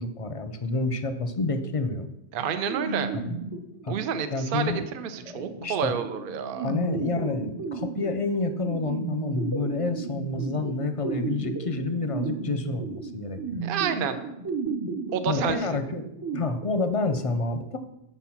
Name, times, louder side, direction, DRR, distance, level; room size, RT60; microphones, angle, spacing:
voice 1, 0.0-2.1 3.1-3.4 3.8-4.0 4.3-4.8 5.3-6.0 6.6-13.6 15.3-16.0 16.3-17.8, left 3 dB, 40° left, 9 dB, 0.5 m, -29 dB
voice 2, 2.3-3.1 3.9-6.7 13.6-14.2 15.1-15.6, right 7 dB, 60° right, 9 dB, 0.7 m, -29 dB
sound 1, 2.7-16.4, right 4 dB, 25° right, 0.5 m, -34 dB
7.1 x 4.3 x 5.7 m, 0.85 s
omnidirectional pair, 1.1 m